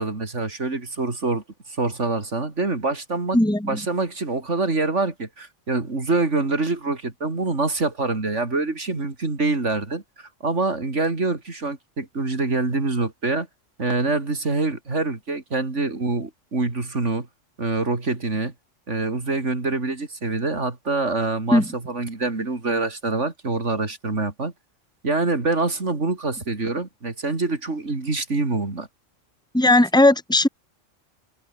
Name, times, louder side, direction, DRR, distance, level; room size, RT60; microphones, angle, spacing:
voice 1, 0.0-3.4 3.6-13.5 13.8-17.3 17.6-18.5 18.9-24.5 25.0-28.9, right 3 dB, 65° right, 3.7 m, -25 dB
voice 2, 3.3-3.8 21.5-21.7 29.5-30.5, left 1 dB, 5° left, 2.3 m, -17 dB
omnidirectional pair, 1.3 m